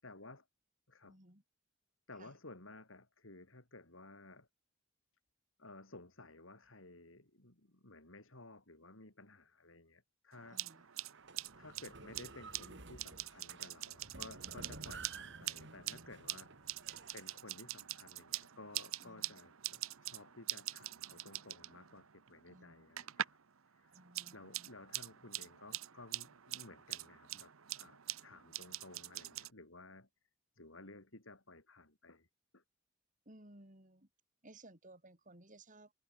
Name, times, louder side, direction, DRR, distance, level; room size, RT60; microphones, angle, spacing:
voice 1, 0.0-0.5 0.9-1.2 2.1-4.5 5.6-10.9 11.6-16.8 17.1-23.4 23.7-24.0 24.3-30.1 30.5-32.3 32.5-32.6, left 2 dB, 70° left, 4.2 m, -56 dB
voice 2, 1.0-1.4 2.2-2.3 10.5-10.8 14.4-14.5 19.0-19.4 22.5-22.9 23.9-24.7 33.3-34.1 34.4-35.9, right 1 dB, 40° right, 7.4 m, -59 dB
sound 1, 10.3-23.5 23.8-29.5, right 13 dB, 80° right, 0.9 m, -45 dB
sound 2, 11.1-17.4, right 3 dB, 60° right, 4.6 m, -53 dB
head